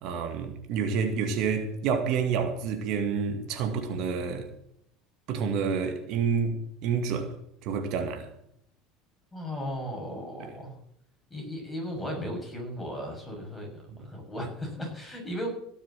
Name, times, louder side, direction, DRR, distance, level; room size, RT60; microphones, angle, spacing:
voice 1, 0.0-4.5 5.3-7.3 7.6-8.3 10.4-10.5 13.9-14.0, right 6 dB, 60° right, 2.1 m, -29 dB
voice 2, 9.3-10.8 11.3-13.7 14.1-15.5, equal, 10° left, 6.9 m, -36 dB
17.0 x 7.2 x 7.6 m
supercardioid pair, 130°, 0 cm